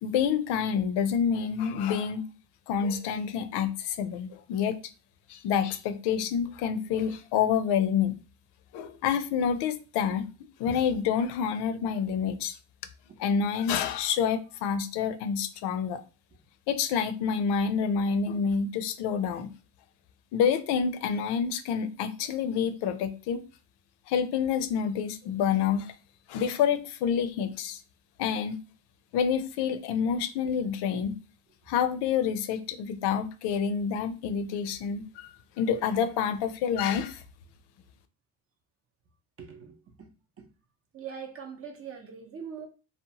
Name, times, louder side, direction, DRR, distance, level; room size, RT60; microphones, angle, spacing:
voice 1, 0.0-2.2 2.7-4.8 5.3-8.2 8.7-10.3 10.6-12.6 13.2-16.0 16.7-19.5 20.3-23.4 24.1-25.9 26.3-27.8 28.2-28.6 29.1-31.2 31.7-37.2, left 7 dB, 80° left, 0.5 m, -28 dB
voice 2, 39.4-40.1 40.4-40.5 40.9-42.7, right 6 dB, 35° right, 0.6 m, -42 dB
2.8 x 2.1 x 2.8 m
cardioid pair, 125°, 40 cm